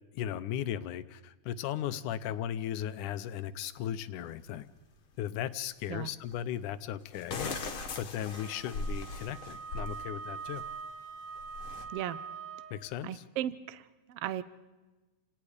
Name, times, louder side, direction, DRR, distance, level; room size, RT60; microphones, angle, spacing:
voice 1, 0.1-4.7 5.2-7.5 8.0-10.6 12.7-13.3, left 10 dB, 85° left, 14 dB, 2.3 m, -36 dB
sound 1, 4.3-4.4 6.3-6.4 7.1-10.0 10.4-10.7 11.4-11.9, left 3 dB, 45° left, 2.4 m, -39 dB
Wind instrument woodwind instrument, 8.2-12.8, right 5 dB, 85° right, 6.7 m, -43 dB
voice 2, 13.0-13.8 14.1-14.4, right 12 dB, 65° right, 15 dB, 1.6 m, -35 dB
29.0 x 18.0 x 5.0 m, 1.2 s
omnidirectional pair, 3.6 m